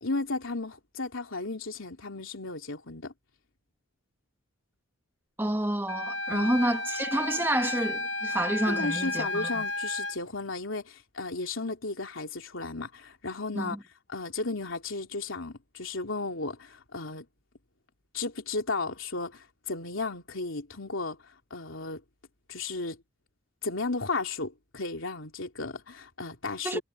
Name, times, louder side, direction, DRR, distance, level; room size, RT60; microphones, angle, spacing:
voice 1, 0.0-3.1 6.3-6.6 8.7-13.8 14.1-17.2 18.1-21.2 21.5-22.0 22.5-23.0 23.6-26.8, left 3 dB, 80° left, 3.0 m, -34 dB
voice 2, 5.4-9.6 13.5-13.8 26.6-26.8, right 1 dB, 10° right, 1.1 m, -29 dB
Wind instrument woodwind instrument, 5.9-10.2, left 2 dB, 60° left, 1.2 m, -32 dB
head